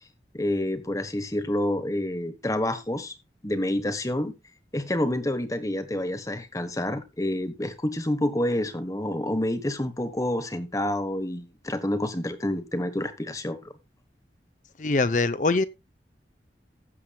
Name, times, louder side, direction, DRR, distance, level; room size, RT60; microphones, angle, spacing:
voice 1, 0.3-3.2 3.4-4.3 4.7-13.7, left 1 dB, 20° left, 1.2 m, -28 dB
voice 2, 14.8-15.7, left 3 dB, 45° left, 0.6 m, -23 dB
16.0 x 7.8 x 2.3 m
head